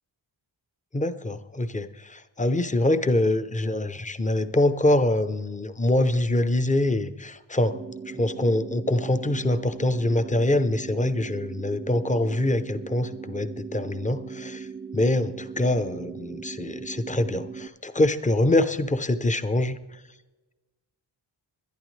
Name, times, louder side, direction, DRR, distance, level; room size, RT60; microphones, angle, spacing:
voice 1, 0.9-7.8 8.1-14.7 14.9-19.8, left 1 dB, 15° left, 11 dB, 0.6 m, -24 dB
sound 1, 7.7-17.7, right 6 dB, 25° right, 0.4 m, -39 dB
21.5 x 11.0 x 3.2 m, 1.2 s
wide cardioid pair, 130°, 46 cm